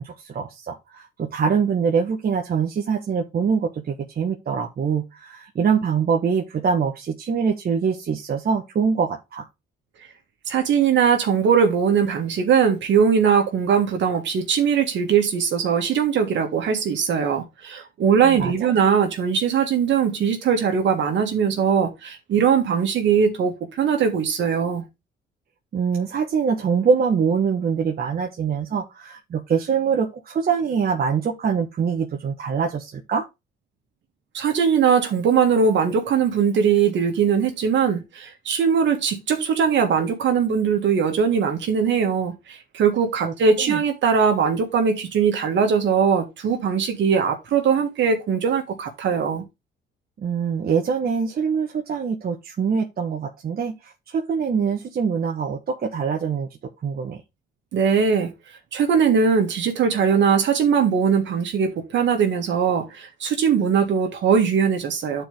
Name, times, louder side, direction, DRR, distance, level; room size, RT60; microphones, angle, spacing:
voice 1, 0.0-9.5 18.2-18.5 25.7-33.2 43.2-43.8 50.2-56.5 56.8-57.2, right 6 dB, 50° right, 1.2 m, -24 dB
voice 2, 10.5-24.8 34.3-49.4 57.7-58.3 58.7-65.2, right 6 dB, 65° right, 1.8 m, -20 dB
10.0 x 4.6 x 3.3 m
cardioid pair, 90°, 20 cm